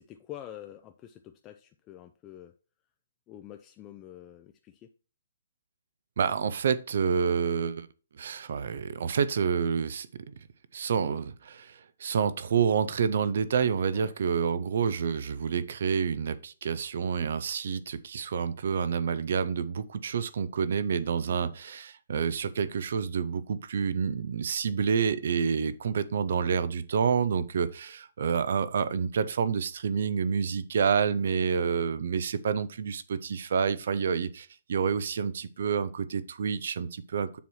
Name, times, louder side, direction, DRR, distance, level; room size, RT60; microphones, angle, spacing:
voice 1, 0.0-2.5 3.3-4.9 13.9-14.1 21.3-21.6, left 12 dB, 25° left, 0.5 m, -47 dB
voice 2, 6.2-7.9 8.1-10.1 10.7-37.4, right 6 dB, 65° right, 0.6 m, -28 dB
7.2 x 3.1 x 5.5 m
hypercardioid pair, 140°, 0 cm